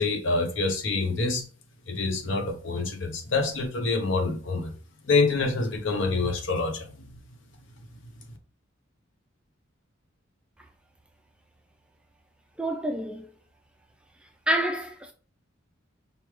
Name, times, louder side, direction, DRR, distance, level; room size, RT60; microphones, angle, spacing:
voice 1, 0.0-1.5 1.9-4.7 5.0-7.1, left 3 dB, 65° left, 0.7 m, -26 dB
voice 2, 12.6-13.3 14.5-15.1, right 1 dB, 5° right, 0.3 m, -28 dB
5.1 x 2.2 x 3.1 m
head